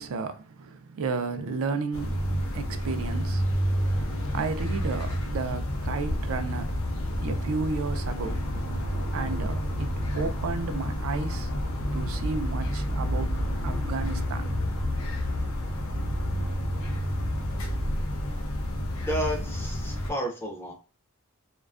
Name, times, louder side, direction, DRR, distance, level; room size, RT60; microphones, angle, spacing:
voice 1, 0.0-6.8 7.2-8.4 9.1-11.5 11.9-13.3 13.6-14.5, right 4 dB, 70° right, 0.4 m, -33 dB
sound 1, 1.9-20.1, equal, 75° left, 0.6 m, -29 dB
voice 2, 19.1-20.7, right 1 dB, 10° left, 0.4 m, -31 dB
2.4 x 2.2 x 2.4 m
head